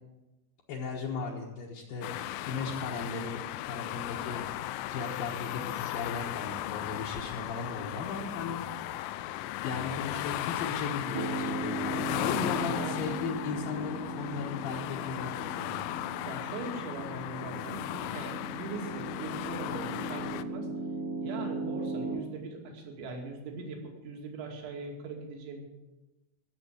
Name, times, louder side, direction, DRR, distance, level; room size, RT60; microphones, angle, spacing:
voice 1, 0.7-9.3 9.6-15.8, left 5 dB, 65° left, -2 dB, 2.6 m, -37 dB
sound 1, 2.0-20.4, left 14 dB, 90° left, 3.1 m, -36 dB
Piano, 11.1-22.2, right 2 dB, 55° right, 2.3 m, -38 dB
voice 2, 12.5-13.2 16.3-20.7 21.2-25.7, right 3 dB, 70° right, 1 dB, 4.6 m, -41 dB
15.5 x 7.3 x 8.7 m, 1.1 s
omnidirectional pair, 5.5 m